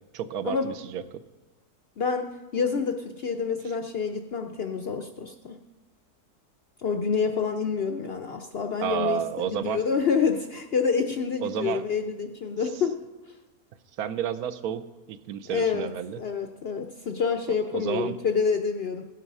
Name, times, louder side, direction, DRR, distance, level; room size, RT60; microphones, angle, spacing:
voice 1, 0.1-1.0 8.8-9.8 11.4-11.8 14.0-16.2 17.7-18.1, right 9 dB, 75° right, 12 dB, 1.1 m, -31 dB
voice 2, 2.0-5.6 6.8-13.0 15.5-15.9 16.2-19.1, left 5 dB, 60° left, 5 dB, 0.6 m, -27 dB
16.5 x 8.0 x 5.5 m, 1.2 s
omnidirectional pair, 1.7 m